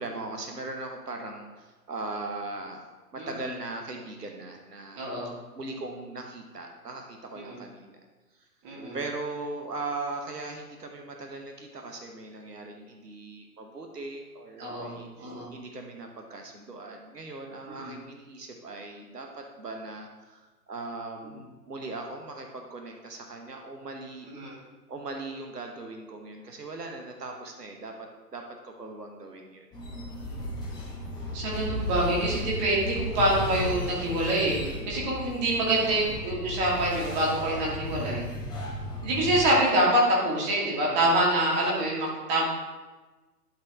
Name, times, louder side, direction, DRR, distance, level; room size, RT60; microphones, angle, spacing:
voice 1, 0.0-5.1 5.5-8.0 8.9-24.3 24.9-29.6 34.6-34.9 40.9-41.1, right 3 dB, 75° right, 3 dB, 1.2 m, -39 dB
voice 2, 5.0-5.3 7.4-7.6 8.6-9.0 14.6-15.5 17.7-17.9 24.3-24.5 31.3-38.2 39.0-42.4, right 1 dB, 25° right, -4 dB, 2.3 m, -26 dB
sound 1, 29.7-39.4, left 1 dB, 10° left, 1.2 m, -35 dB
12.0 x 4.5 x 3.6 m, 1.2 s
figure-of-eight pair, 125°, 48 cm